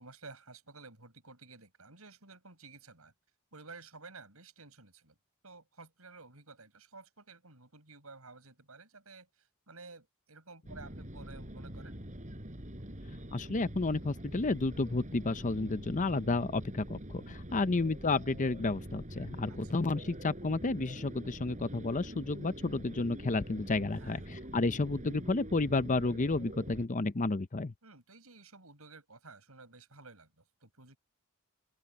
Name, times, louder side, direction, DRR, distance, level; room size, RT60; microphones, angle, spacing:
voice 1, 0.0-3.1 3.5-5.1 5.4-9.3 9.7-12.0 17.5-17.8 19.5-19.8 23.9-24.2 27.8-31.0, right 3 dB, 85° right, 7.4 m, -53 dB
sound 1, 10.7-26.9, right 1 dB, 35° right, 4.9 m, -45 dB
voice 2, 13.3-27.7, left 3 dB, 35° left, 0.8 m, -31 dB
open air
head